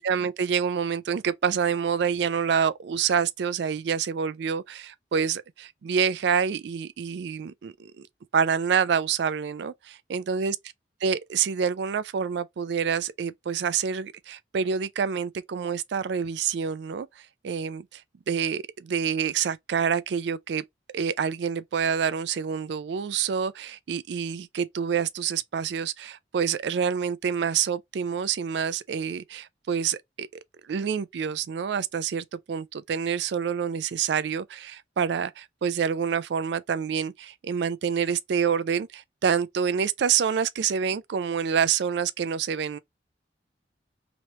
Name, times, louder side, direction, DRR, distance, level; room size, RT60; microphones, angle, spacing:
voice 1, 0.0-8.1 8.3-10.6 11.0-18.0 18.3-20.6 20.9-42.8, right 7 dB, 70° right, 0.3 m, -27 dB
3.0 x 2.9 x 3.0 m
head